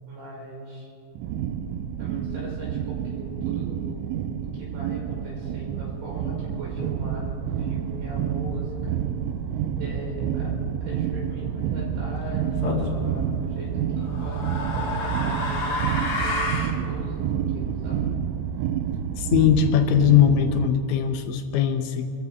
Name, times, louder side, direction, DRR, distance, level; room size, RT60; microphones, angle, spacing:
voice 1, 0.1-0.9 2.0-4.0 4.4-9.0 9.7-10.5 10.8-13.7 14.0-18.0, equal, 70° right, -5 dB, 7.7 m, -40 dB
sound 1, 1.2-20.7, right 8 dB, 90° right, 3.1 m, -29 dB
sound 2, 12.6-13.0 14.0-16.8, left 2 dB, 45° left, 1.9 m, -29 dB
voice 2, 19.2-22.1, left 9 dB, 80° left, 7 dB, 2.9 m, -20 dB
27.5 x 14.5 x 3.5 m, 2.4 s
omnidirectional pair, 5.5 m